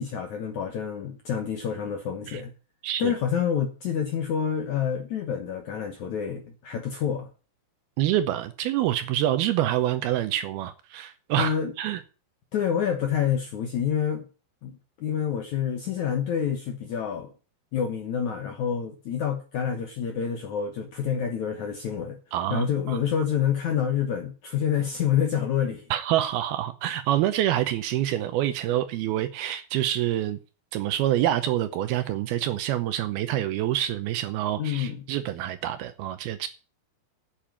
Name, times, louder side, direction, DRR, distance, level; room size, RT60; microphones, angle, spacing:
voice 1, 0.0-2.5 3.0-7.3 11.4-11.7 12.5-14.3 14.6-17.3 17.7-22.2 22.5-25.8 34.6-35.0, left 8 dB, 70° left, 1.8 m, -28 dB
voice 2, 8.0-12.0 22.3-23.0 25.9-30.4 30.7-36.5, right 12 dB, 75° right, 2.4 m, -26 dB
8.6 x 7.7 x 8.7 m
omnidirectional pair, 5.0 m